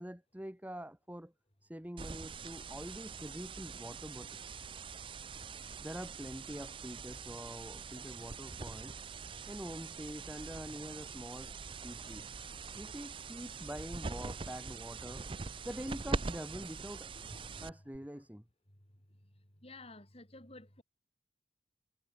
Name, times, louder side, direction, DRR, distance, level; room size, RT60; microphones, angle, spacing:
voice 1, 0.0-1.3 1.6-4.6 5.8-9.0 9.5-11.5 11.8-12.4 12.7-15.3 15.6-17.1 17.6-18.4, equal, 10° right, 1.1 m, -45 dB
sound 1, 2.0-18.0, right 4 dB, 30° right, 0.5 m, -43 dB
voice 2, 19.6-20.8, left 2 dB, 35° left, 4.8 m, -52 dB
head